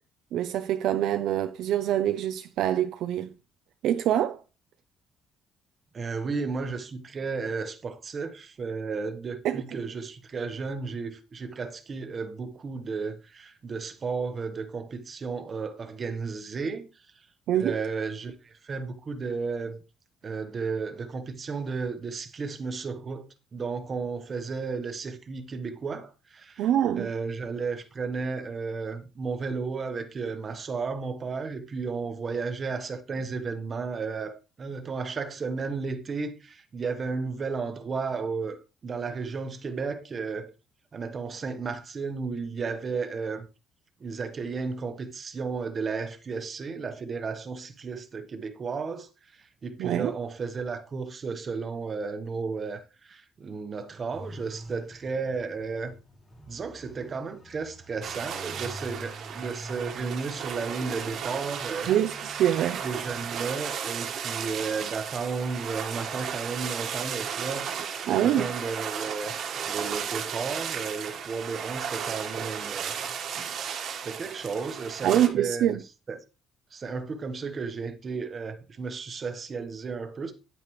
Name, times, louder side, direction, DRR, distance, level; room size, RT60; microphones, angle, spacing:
voice 1, 0.3-3.3 3.8-4.4 9.4-9.6 17.5-17.8 26.6-27.1 49.8-50.1 61.9-62.8 68.1-68.5 75.0-75.8, right 11 dB, 65° right, 0.6 m, -25 dB
voice 2, 5.9-17.3 17.5-19.8 20.2-23.3 23.5-26.7 27.0-40.5 40.9-43.5 44.0-55.9 56.5-61.9 62.8-69.4 69.6-73.0 74.0-75.8 76.1-76.2 76.7-80.3, right 4 dB, 25° right, 1.2 m, -33 dB
sound 1, 54.1-63.4, equal, 20° left, 2.5 m, -46 dB
sound 2, 58.0-75.3, right 7 dB, 50° right, 1.5 m, -34 dB
10.0 x 9.0 x 3.2 m
cardioid pair, 170°, 0 cm